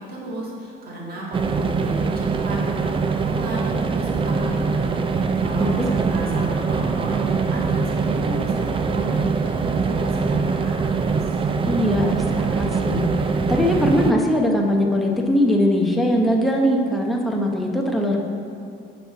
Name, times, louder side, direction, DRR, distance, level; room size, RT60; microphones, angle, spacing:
voice 1, 0.0-11.4, right 1 dB, 50° right, -5 dB, 2.0 m, -33 dB
sound 1, 1.3-14.1, right 4 dB, 25° right, 0.4 m, -23 dB
voice 2, 11.6-13.1 13.5-18.2, left 1 dB, ahead, -1 dB, 0.8 m, -21 dB
9.7 x 4.2 x 5.7 m, 2.4 s
cardioid pair, 160°, 20 cm